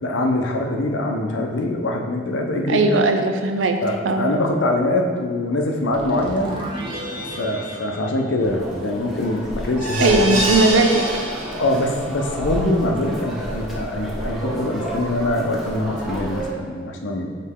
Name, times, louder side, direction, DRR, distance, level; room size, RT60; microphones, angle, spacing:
voice 1, 0.0-2.8 3.8-6.5 7.1-10.4 11.6-17.3, left 1 dB, 80° left, 2 dB, 0.7 m, -23 dB
voice 2, 2.7-3.8 4.0-4.2 10.0-11.0, right 2 dB, 80° right, 6 dB, 0.6 m, -18 dB
sound 1, 5.7-9.0, equal, 25° right, 1.0 m, -33 dB
sound 2, 8.4-16.5, right 1 dB, ahead, 1.0 m, -31 dB
sound 3, 9.8-12.0 12.5-12.6 12.9-13.0, right 1 dB, 40° right, 1.2 m, -26 dB
6.6 x 4.1 x 3.7 m, 2.1 s
head